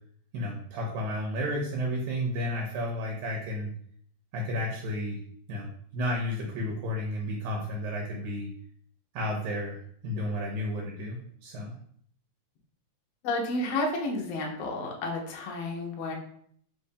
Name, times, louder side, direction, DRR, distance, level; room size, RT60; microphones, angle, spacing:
voice 1, 0.3-3.7 4.3-5.2 5.5-5.7 5.9-8.5 9.1-9.8 10.0-11.7, left 1 dB, 80° right, -1 dB, 2.1 m, -32 dB
voice 2, 13.2-16.1, left 2 dB, 70° left, 0 dB, 1.6 m, -31 dB
4.7 x 3.4 x 2.7 m, 0.62 s
omnidirectional pair, 3.5 m